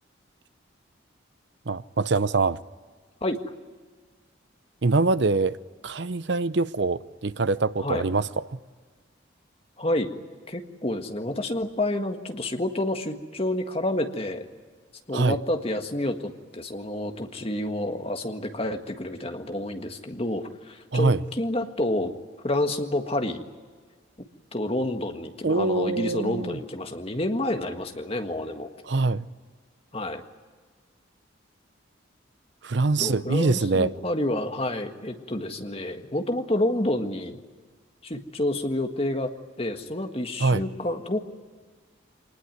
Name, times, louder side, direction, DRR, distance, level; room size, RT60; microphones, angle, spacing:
voice 1, 1.7-2.6 4.8-5.6 5.8-8.6 15.1-15.4 20.9-21.2 25.4-26.6 28.9-29.3 32.6-33.9 40.4-40.6, right 3 dB, 60° right, 0.7 m, -24 dB
voice 2, 9.8-10.2 10.5-14.4 15.1-22.1 22.4-23.4 24.5-28.7 29.9-30.2 33.0-37.4 38.0-39.3 39.6-41.2, left 1 dB, 30° left, 1.7 m, -29 dB
24.5 x 20.0 x 9.5 m
head